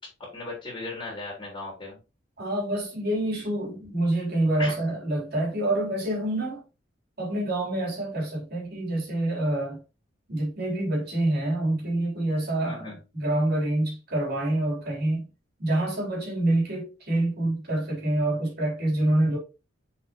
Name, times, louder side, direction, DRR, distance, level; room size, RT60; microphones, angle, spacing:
voice 1, 0.2-2.0 4.6-4.8 12.6-13.0, left 2 dB, 25° left, 2.9 m, -36 dB
voice 2, 2.4-6.6 7.2-9.8 10.3-15.2 15.6-19.4, right 1 dB, 55° right, 3.4 m, -26 dB
6.7 x 5.5 x 3.0 m
head